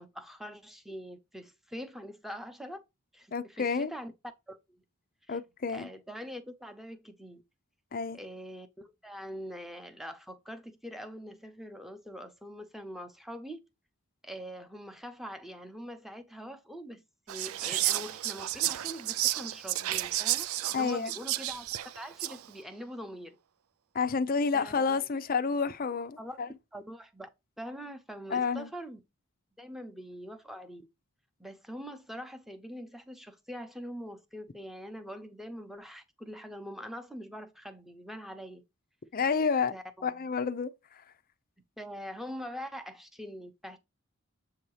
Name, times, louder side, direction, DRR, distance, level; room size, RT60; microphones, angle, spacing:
voice 1, 0.0-2.8 3.1-4.1 4.5-4.8 5.3-5.4 5.7-7.4 8.1-13.6 14.2-21.7 21.9-23.4 24.5-25.0 26.2-26.4 26.7-27.3 27.6-29.0 29.6-30.8 31.4-38.6 39.7-40.3 41.8-43.8, equal, ahead, 0.8 m, -43 dB
voice 2, 3.3-3.9 5.3-5.9 7.9-8.2 20.7-21.1 23.9-26.5 28.3-28.7 39.1-39.7 40.0-40.7, left 5 dB, 40° left, 0.5 m, -29 dB
Whispering, 17.3-22.5, right 14 dB, 75° right, 0.4 m, -32 dB
7.7 x 2.8 x 4.8 m
head